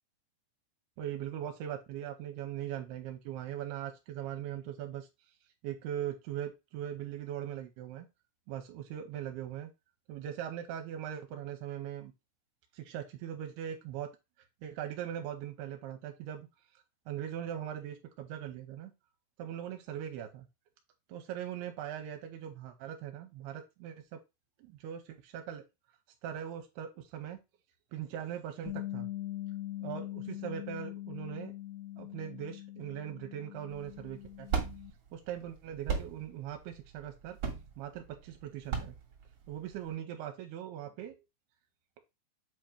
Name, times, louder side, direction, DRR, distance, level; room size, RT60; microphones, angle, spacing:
voice 1, 1.0-5.1 5.6-8.1 8.5-9.7 10.1-12.1 12.7-14.1 14.6-16.5 17.1-18.9 19.4-20.5 21.1-24.2 24.6-25.6 26.2-27.4 27.9-29.1 29.8-31.5 32.0-34.6 35.1-37.4 37.8-38.9 39.5-41.2, right 10 dB, 80° right, 5 dB, 2.7 m, -40 dB
Bass guitar, 28.7-34.9, left 15 dB, 75° left, 1.9 m, -42 dB
sound 1, 33.7-39.9, right 6 dB, 50° right, 1.8 m, -37 dB
7.9 x 2.9 x 5.1 m, 0.24 s
omnidirectional pair, 4.7 m